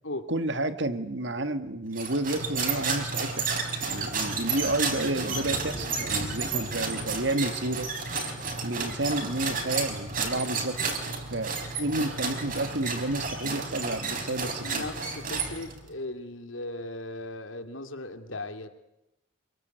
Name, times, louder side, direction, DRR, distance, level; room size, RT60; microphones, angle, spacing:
voice 1, 0.3-7.9 8.6-10.8 11.3-14.9, right 1 dB, 60° right, 10 dB, 1.7 m, -30 dB
sound 1, 1.9-15.9, right 4 dB, 40° right, 4.7 m, -32 dB
voice 2, 14.6-18.7, left 2 dB, 75° left, 7 dB, 2.7 m, -37 dB
27.5 x 22.5 x 9.3 m, 0.89 s
head